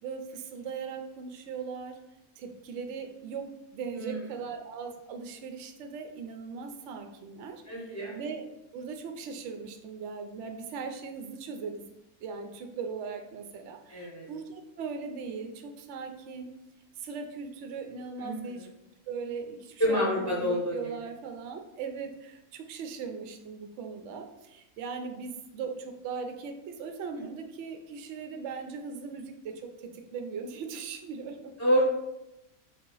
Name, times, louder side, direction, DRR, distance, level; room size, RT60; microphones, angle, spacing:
voice 1, 0.0-2.0 2.4-11.9 12.2-16.5 17.0-18.7 19.1-31.5, right 5 dB, 65° right, 5 dB, 0.8 m, -39 dB
voice 2, 7.7-8.2 13.9-14.2 18.2-18.6 19.8-20.8 31.6-31.9, equal, 15° left, -5 dB, 0.7 m, -27 dB
3.9 x 2.8 x 3.9 m, 0.89 s
omnidirectional pair, 1.5 m